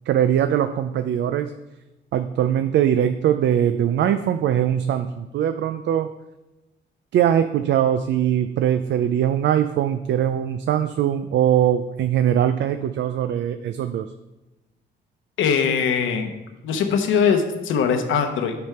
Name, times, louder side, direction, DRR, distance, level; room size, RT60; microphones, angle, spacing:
voice 1, 0.1-1.5 2.1-6.1 7.1-14.1, right 10 dB, 65° right, 9 dB, 0.4 m, -21 dB
voice 2, 15.4-16.3 16.6-18.6, left 6 dB, 80° left, 6 dB, 0.9 m, -21 dB
9.3 x 3.5 x 5.6 m, 1.0 s
cardioid pair, 90°, 20 cm